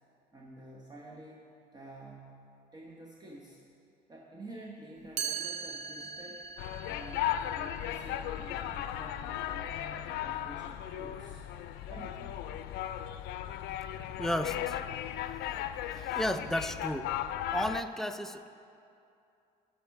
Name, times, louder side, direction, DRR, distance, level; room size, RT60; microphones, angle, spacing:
voice 1, 0.3-1.5 1.7-2.5 2.7-3.6 4.1-6.5 6.8-11.5 11.9-12.3 16.1-16.2, right 1 dB, 25° right, -3 dB, 1.1 m, -49 dB
Chime, 5.2-11.0, right 7 dB, 45° right, 0.9 m, -42 dB
sound 1, 6.6-17.8, left 11 dB, 80° left, 0.4 m, -36 dB
voice 2, 14.2-14.8 15.9-17.1 17.5-18.5, equal, ahead, 8 dB, 0.4 m, -33 dB
11.0 x 5.9 x 5.8 m, 2.6 s
cardioid pair, 110°, 17 cm